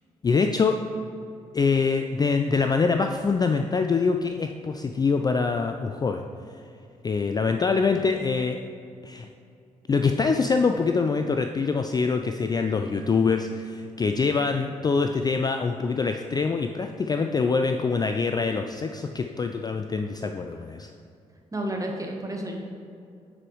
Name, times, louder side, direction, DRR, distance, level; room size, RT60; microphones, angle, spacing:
voice 1, 0.2-0.8 1.5-6.2 7.0-8.6 9.0-9.3 9.9-20.9, left 4 dB, 25° left, 5 dB, 0.3 m, -24 dB
voice 2, 21.5-22.6, right 1 dB, 20° right, 1 dB, 1.3 m, -31 dB
9.6 x 4.7 x 3.2 m, 2.5 s
figure-of-eight pair, 40°, 17 cm